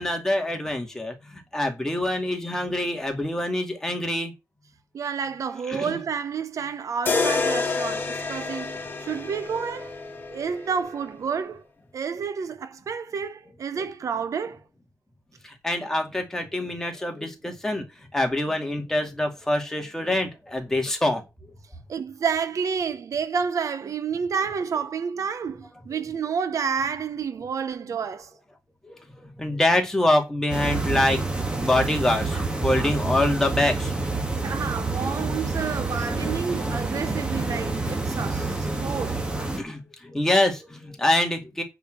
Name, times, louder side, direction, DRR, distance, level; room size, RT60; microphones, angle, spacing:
voice 1, 0.0-4.3 5.7-6.0 15.4-17.8 18.1-21.2 25.9-26.0 28.8-33.9 38.7-38.9 39.6-41.6, left 1 dB, 10° left, 2.2 m, -25 dB
voice 2, 4.9-9.9 10.3-11.6 11.9-14.6 21.9-28.3 34.4-39.2, right 6 dB, 65° right, 0.8 m, -30 dB
sound 1, 7.1-11.1, left 4 dB, 35° left, 2.1 m, -28 dB
sound 2, 30.5-39.6, right 3 dB, 15° right, 1.8 m, -28 dB
9.0 x 4.9 x 7.5 m
wide cardioid pair, 180°, 6 cm